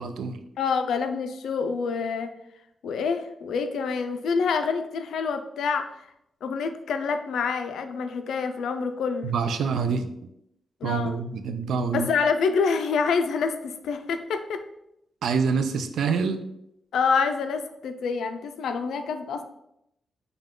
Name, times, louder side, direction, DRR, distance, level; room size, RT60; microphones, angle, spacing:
voice 1, 0.0-0.4 9.2-10.1 10.8-12.1 15.2-16.4, right 5 dB, 85° right, 8 dB, 0.4 m, -26 dB
voice 2, 0.6-2.3 2.8-6.1 6.4-9.3 10.8-11.2 11.9-14.6 16.9-19.4, left 5 dB, 85° left, 8 dB, 0.4 m, -27 dB
5.3 x 2.3 x 3.7 m, 0.80 s
wide cardioid pair, 145°, 0 cm